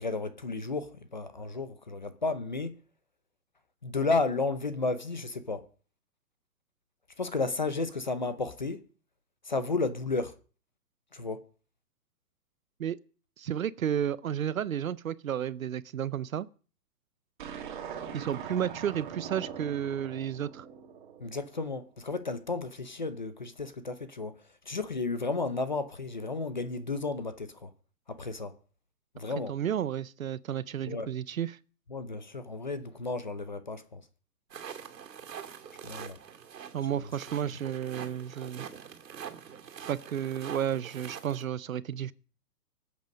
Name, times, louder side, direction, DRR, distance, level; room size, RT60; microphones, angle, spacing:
voice 1, 0.0-2.8 3.8-5.7 7.2-8.8 9.4-10.4 11.1-11.4 21.2-24.4 24.7-27.7 28.1-28.6 29.1-29.5 30.8-31.1 31.9-34.0 35.8-36.2 36.9-37.1, left 3 dB, 30° left, 0.6 m, -33 dB
voice 2, 13.4-16.5 18.1-20.7 29.5-31.6 36.7-38.7 39.9-42.1, right 9 dB, 55° right, 0.7 m, -32 dB
sound 1, 17.4-21.8, right 7 dB, 30° right, 1.9 m, -42 dB
sound 2, 34.5-41.4, right 8 dB, 80° right, 2.4 m, -44 dB
24.0 x 8.2 x 5.2 m
hypercardioid pair, 175°, 49 cm